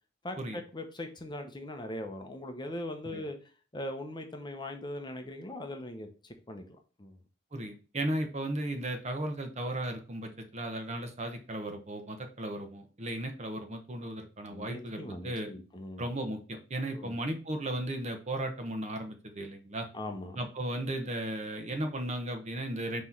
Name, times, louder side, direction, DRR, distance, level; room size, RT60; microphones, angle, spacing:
voice 1, 0.2-3.4 3.7-6.6 7.0-7.1 14.5-16.1 16.8-17.1 19.9-20.4, left 1 dB, 25° left, 5 dB, 0.8 m, -40 dB
voice 2, 7.5-15.5 16.0-19.9 20.4-23.0, right 1 dB, 35° right, 5 dB, 1.0 m, -35 dB
6.0 x 3.2 x 5.8 m, 0.36 s
head